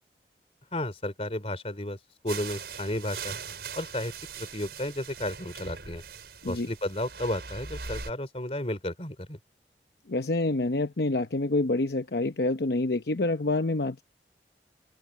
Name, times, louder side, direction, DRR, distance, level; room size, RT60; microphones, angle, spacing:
voice 1, 0.7-2.0 2.2-3.3 3.7-6.0 6.5-9.4, left 1 dB, 35° left, 3.7 m, -33 dB
sound 1, 2.3-8.1, right 5 dB, 65° right, 4.9 m, -41 dB
voice 2, 10.1-14.0, left 2 dB, 70° left, 0.8 m, -27 dB
open air
head